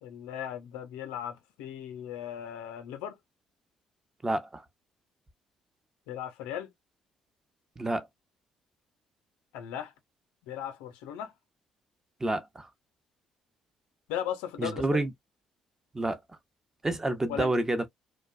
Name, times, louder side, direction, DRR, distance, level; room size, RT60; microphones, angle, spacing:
voice 1, 0.0-3.2 6.1-6.7 9.5-9.9 10.4-11.3 14.1-15.1 17.3-17.5, left 10 dB, 80° left, 0.5 m, -37 dB
voice 2, 4.2-4.6 7.8-8.1 12.2-12.7 14.6-15.1 15.9-16.2 16.8-17.9, right 2 dB, 20° right, 0.7 m, -29 dB
2.5 x 2.1 x 2.4 m
hypercardioid pair, 50°, 2 cm